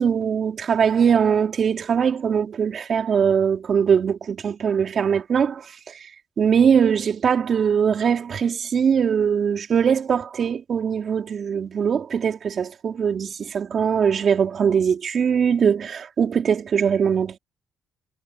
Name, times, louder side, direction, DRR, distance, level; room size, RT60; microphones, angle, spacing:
voice 1, 0.0-6.1 6.4-17.4, right 7 dB, 55° right, 3.6 m, -21 dB
cardioid pair, 90°, 0 cm